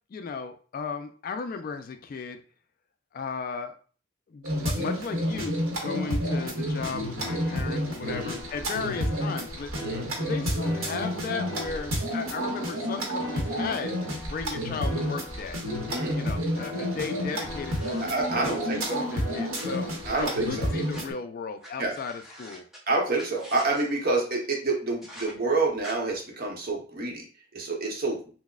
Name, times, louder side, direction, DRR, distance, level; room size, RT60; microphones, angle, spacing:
voice 1, 0.1-2.4 3.1-3.8 4.3-13.9 14.3-15.6 16.1-19.9 20.2-22.6, left 5 dB, 45° left, 7 dB, 0.3 m, -35 dB
sound 1, 4.4-21.1, equal, 85° right, 1.0 m, -30 dB
sound 2, 7.2-20.9, left 3 dB, 20° left, 1.7 m, -43 dB
sound 3, 17.6-19.0 19.5-21.0 21.6-21.7 21.9-22.8 23.2-23.9 25.0-25.3 25.8-25.9, equal, ahead, 0.7 m, -46 dB
voice 2, 18.0-19.0 20.0-20.7 21.8-21.9 22.9-27.2 27.5-28.2, right 3 dB, 45° right, 0 dB, 0.8 m, -28 dB
6.0 x 2.0 x 2.3 m, 0.41 s
head